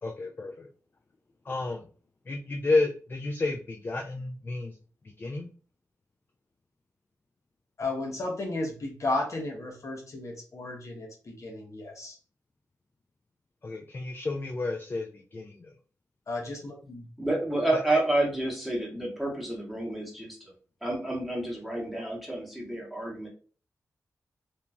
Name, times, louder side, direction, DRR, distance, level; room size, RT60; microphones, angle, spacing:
voice 1, 0.0-0.7 1.5-1.8 2.3-4.7 5.2-5.5 13.6-15.7 17.7-18.0, left 3 dB, 35° left, 3 dB, 0.4 m, -31 dB
voice 2, 7.8-12.2 16.3-17.1, left 2 dB, 55° left, 1 dB, 0.8 m, -34 dB
voice 3, 17.2-20.4 20.8-23.3, right 1 dB, ahead, -3 dB, 1.1 m, -29 dB
2.9 x 2.5 x 2.2 m, 0.39 s
cardioid pair, 75°, 6 cm